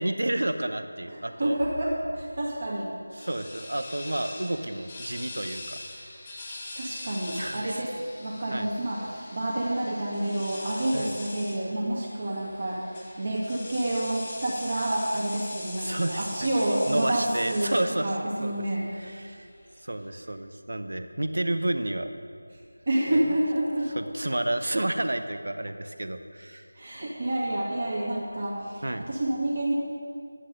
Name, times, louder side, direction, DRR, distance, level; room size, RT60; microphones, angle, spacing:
voice 1, 0.0-1.6 3.2-5.8 7.2-7.8 8.5-8.7 10.9-11.1 15.8-16.3 16.9-18.1 18.4-18.5 19.1-19.5 19.8-22.1 23.1-23.2 24.0-26.7 28.8-29.1, right 1 dB, 60° right, 9 dB, 0.8 m, -30 dB
voice 2, 1.1-2.9 6.8-18.9 22.9-23.9 26.8-29.7, right 1 dB, 45° right, -5 dB, 2.1 m, -29 dB
sound 1, 3.2-20.1, left 2 dB, 20° left, 1.2 m, -42 dB
10.5 x 10.0 x 5.3 m, 2.3 s
figure-of-eight pair, 165°, 0 cm